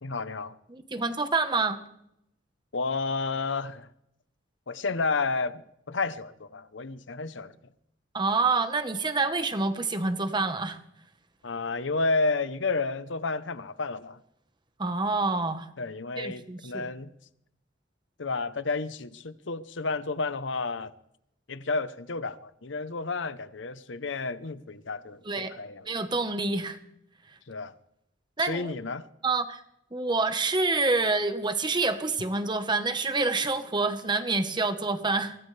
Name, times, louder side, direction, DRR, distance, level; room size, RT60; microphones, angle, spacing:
voice 1, 0.0-0.5 2.7-3.9 4.7-7.5 11.4-14.2 15.8-17.1 18.2-20.9 21.5-25.2 25.5-25.8 27.5-27.7 28.4-29.0, left 3 dB, 70° left, 0.9 m, -31 dB
voice 2, 0.7-1.8 8.1-10.8 14.8-15.7 16.1-16.9 25.2-25.5 25.8-26.8 28.4-28.7 29.2-29.6 29.9-35.3, right 3 dB, 25° right, 1.2 m, -27 dB
24.0 x 17.5 x 3.4 m
head